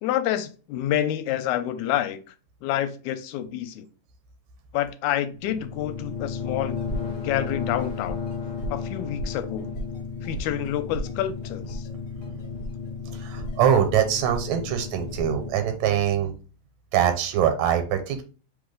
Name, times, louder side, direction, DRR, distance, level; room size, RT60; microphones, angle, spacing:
voice 1, 0.0-2.3 2.6-3.9 4.7-6.8 7.2-8.2 8.7-9.7 10.2-11.9, left 12 dB, 90° left, 10 dB, 2.0 m, -28 dB
sound 1, 5.3-15.5, left 4 dB, 50° left, 1.3 m, -33 dB
voice 2, 13.1-16.3 16.9-18.2, right 9 dB, 85° right, 7 dB, 2.0 m, -23 dB
3.9 x 3.4 x 3.7 m, 0.36 s
omnidirectional pair, 3.3 m